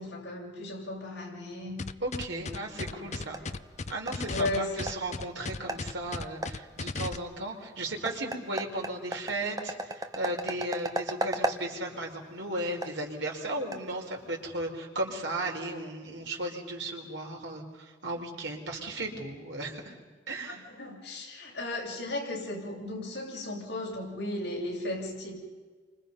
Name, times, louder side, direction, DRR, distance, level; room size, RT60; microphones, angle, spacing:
voice 1, 0.0-1.9 2.3-3.6 4.3-4.9 20.5-25.4, left 1 dB, 60° left, -3 dB, 7.4 m, -36 dB
sound 1, 1.8-7.2, left 3 dB, 35° left, 0.6 m, -36 dB
voice 2, 2.0-3.4 3.9-19.9 20.3-20.6, right 1 dB, 75° right, 1 dB, 4.8 m, -35 dB
sound 2, 2.7-14.5, right 1 dB, 20° right, 1.0 m, -38 dB
29.0 x 25.5 x 5.6 m, 1.4 s
head